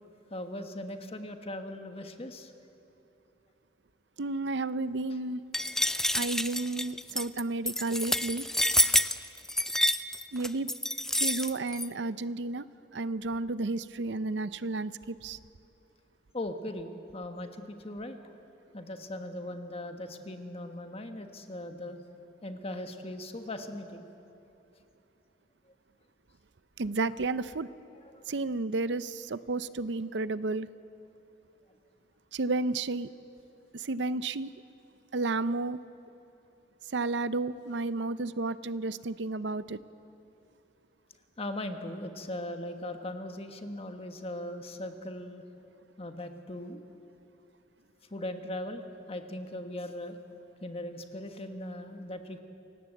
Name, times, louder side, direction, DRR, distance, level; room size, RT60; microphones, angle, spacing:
voice 1, 0.3-2.5 16.3-18.4 18.7-22.0 22.4-24.0 28.0-28.2 41.4-45.4 46.0-46.8 48.1-50.2 50.6-52.4, left 1 dB, 35° left, 6 dB, 1.4 m, -39 dB
voice 2, 4.2-5.4 6.1-8.4 10.3-10.7 11.2-12.7 12.9-15.4 26.8-27.7 28.3-30.7 32.3-33.1 33.7-34.5 35.1-35.8 36.9-39.8, right 3 dB, 75° right, 15 dB, 0.7 m, -32 dB
sound 1, 5.5-11.9, left 1 dB, 5° left, 0.5 m, -28 dB
27.5 x 18.0 x 7.9 m, 2.9 s
head